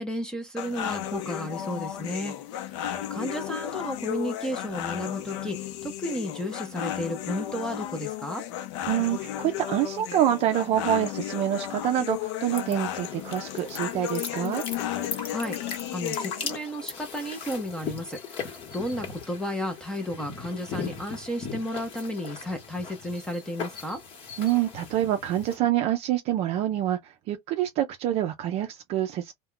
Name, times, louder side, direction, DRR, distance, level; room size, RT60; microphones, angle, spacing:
voice 1, 0.0-2.3 2.7-2.8 3.1-8.4 15.3-15.6 15.9-24.0, equal, 5° left, 0.6 m, -33 dB
sound 1, 0.6-16.6, left 11 dB, 80° left, 0.6 m, -34 dB
voice 2, 8.9-14.6 24.4-29.3, right 12 dB, 45° right, 0.4 m, -26 dB
sound 2, 12.5-25.6, left 6 dB, 40° left, 1.1 m, -38 dB
2.3 x 2.2 x 3.6 m
supercardioid pair, 140°, 15 cm